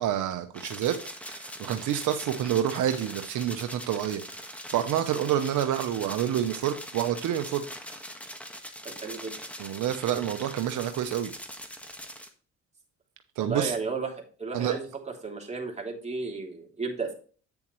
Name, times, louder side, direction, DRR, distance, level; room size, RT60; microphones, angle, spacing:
voice 1, 0.0-7.6 9.6-11.3 13.4-13.7 14.5-14.8, right 10 dB, 80° right, 8 dB, 0.9 m, -28 dB
sound 1, 0.5-12.3, equal, 5° left, 1.5 m, -42 dB
voice 2, 9.0-9.4 13.4-14.1 14.4-14.9 15.2-17.1, right 4 dB, 20° right, 0 dB, 3.0 m, -33 dB
9.0 x 7.1 x 3.1 m, 0.39 s
cardioid pair, 90°, 30 cm